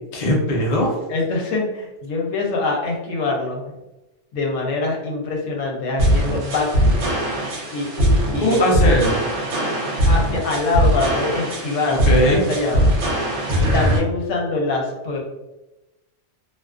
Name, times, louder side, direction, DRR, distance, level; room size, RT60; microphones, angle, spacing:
voice 1, 0.1-1.0 8.4-9.1 11.9-12.5, equal, 50° left, -1 dB, 0.5 m, -19 dB
voice 2, 1.1-3.7 4.3-7.0 7.7-8.8 9.7-12.9 13.6-15.2, left 3 dB, 80° left, 0 dB, 1.0 m, -24 dB
sound 1, 6.0-14.0, equal, 70° right, 0.9 m, -20 dB
2.4 x 2.3 x 2.3 m, 1.0 s
omnidirectional pair, 1.3 m